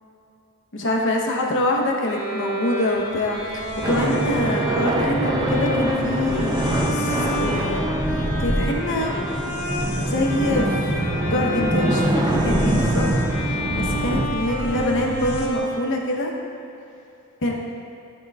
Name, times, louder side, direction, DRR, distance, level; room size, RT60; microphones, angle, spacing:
voice 1, 0.7-6.9 7.4-9.1 10.0-10.9 11.2-13.1 13.4-16.3 17.4-17.6, left 1 dB, 60° left, 0 dB, 0.9 m, -25 dB
Bowed string instrument, 2.0-15.6, equal, 30° left, 1.5 m, -30 dB
sound 1, 2.9-15.5, equal, 80° left, 1.1 m, -33 dB
sound 2, 3.8-14.3, right 1 dB, 20° right, 0.5 m, -24 dB
12.0 x 6.5 x 2.4 m, 2.7 s
head